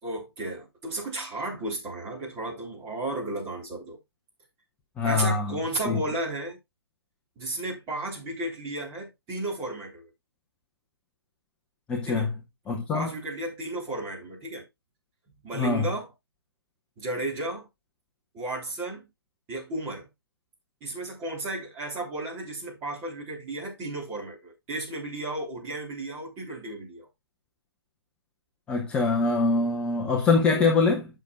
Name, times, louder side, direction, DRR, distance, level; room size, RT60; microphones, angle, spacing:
voice 1, 0.0-4.0 5.0-6.6 7.4-10.1 12.1-12.3 12.9-14.7 15.4-16.1 17.0-17.7 18.3-19.1 19.5-20.1 20.8-27.1 30.6-30.7, right 2 dB, 15° right, 3.8 m, -33 dB
voice 2, 5.0-5.6 5.8-6.0 11.9-12.3 12.7-13.1 15.5-15.9 28.7-31.1, left 4 dB, 10° left, 0.7 m, -24 dB
11.5 x 6.7 x 2.4 m
figure-of-eight pair, 140°, 14 cm